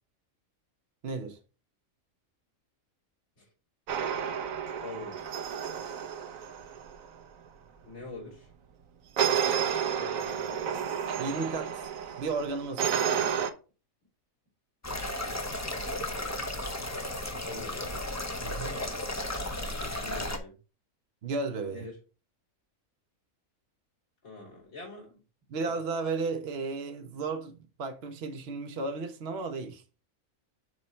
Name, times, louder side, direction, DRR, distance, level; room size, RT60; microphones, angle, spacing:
voice 1, 1.0-1.4 11.2-12.9 18.4-18.8 21.2-21.9 25.5-29.8, right 4 dB, 55° right, 0.9 m, -34 dB
sound 1, 3.9-7.1 9.2-13.5, right 8 dB, 70° right, 1.1 m, -31 dB
voice 2, 4.8-5.3 7.8-8.5 9.2-10.5 17.4-17.9 19.8-20.5 21.7-21.9 24.2-25.2 25.5-25.7, left 3 dB, 75° left, 3.5 m, -45 dB
sound 2, 14.8-20.4, left 1 dB, 20° left, 0.5 m, -34 dB
6.3 x 4.0 x 4.3 m
omnidirectional pair, 1.5 m